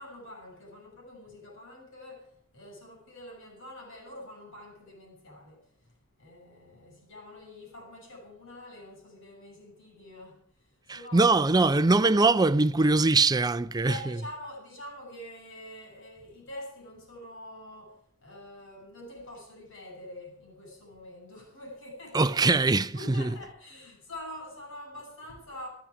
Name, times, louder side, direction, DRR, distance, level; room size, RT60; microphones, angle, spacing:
voice 1, 0.0-5.9 6.2-11.4 13.8-22.3 22.9-25.7, left 1 dB, 65° left, 7.0 m, -45 dB
voice 2, 10.9-14.0 22.1-23.3, right 3 dB, 20° right, 0.5 m, -22 dB
14.0 x 14.0 x 4.9 m
head